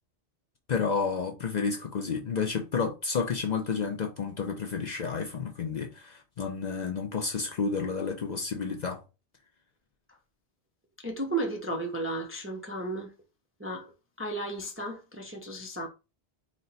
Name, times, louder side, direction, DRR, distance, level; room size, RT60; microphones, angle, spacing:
voice 1, 0.7-9.0, left 5 dB, 50° left, 0.6 m, -31 dB
voice 2, 11.0-13.1 13.6-13.9 14.2-15.9, right 2 dB, 20° right, 0.4 m, -34 dB
4.2 x 2.1 x 3.9 m
omnidirectional pair, 1.1 m